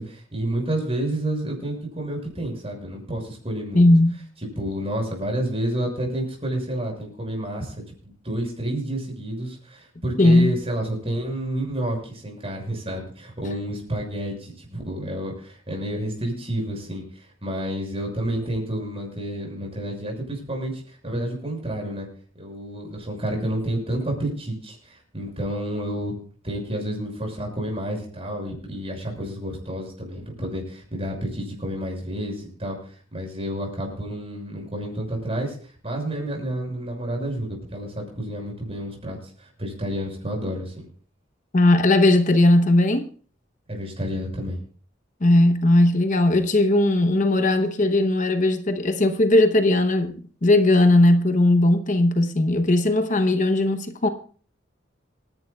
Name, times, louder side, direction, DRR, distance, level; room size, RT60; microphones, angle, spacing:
voice 1, 0.0-3.9 4.6-22.1 22.4-26.1 26.4-35.6 35.8-40.8 43.7-44.6, right 1 dB, 35° right, 6.5 m, -30 dB
voice 2, 3.7-4.2 10.2-10.5 41.5-43.1 45.2-54.1, left 1 dB, 45° left, 0.9 m, -18 dB
27.0 x 11.0 x 2.3 m
head